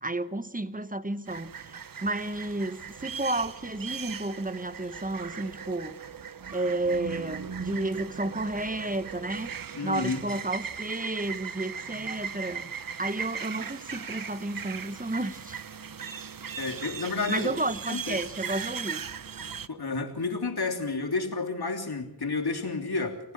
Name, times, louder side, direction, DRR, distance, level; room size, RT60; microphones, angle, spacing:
voice 1, 0.0-6.0 6.5-9.5 9.8-12.7 13.0-15.6 16.4-16.6 17.3-19.0, right 2 dB, 20° right, 12 dB, 1.2 m, -32 dB
sound 1, 1.3-19.7, right 6 dB, 55° right, 0.8 m, -38 dB
voice 2, 9.7-10.2 16.6-17.5 17.9-18.2 19.7-23.3, left 3 dB, 65° left, 4 dB, 3.3 m, -31 dB
28.5 x 15.0 x 6.0 m, 0.78 s
cardioid pair, 50°, 40 cm